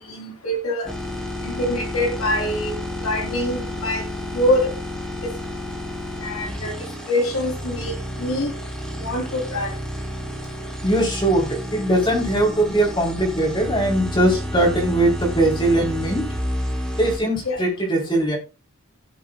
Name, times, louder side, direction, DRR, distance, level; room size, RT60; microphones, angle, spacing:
voice 1, 0.1-0.9 1.4-4.0 4.3-4.7 6.2-6.8 7.1-8.5 9.0-9.7 17.4-17.6, left 1 dB, 80° left, 3.7 m, -24 dB
sound 1, 0.8-17.2, equal, 5° left, 3.6 m, -30 dB
voice 2, 10.8-16.2 17.0-18.4, right 1 dB, 20° left, 4.1 m, -20 dB
17.0 x 7.3 x 2.4 m
head